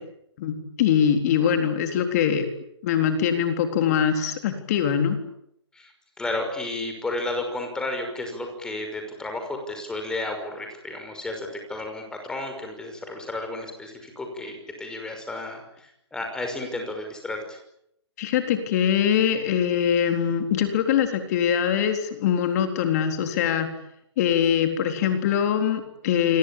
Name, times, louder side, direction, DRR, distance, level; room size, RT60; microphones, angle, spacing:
voice 1, 0.4-2.5 2.8-5.2 18.2-23.7 24.2-26.4, left 8 dB, 35° left, 6 dB, 3.8 m, -23 dB
voice 2, 6.2-14.5 14.8-17.6, left 2 dB, 5° left, 4 dB, 5.8 m, -32 dB
28.5 x 23.5 x 8.8 m, 0.77 s
hypercardioid pair, 155°, 15 cm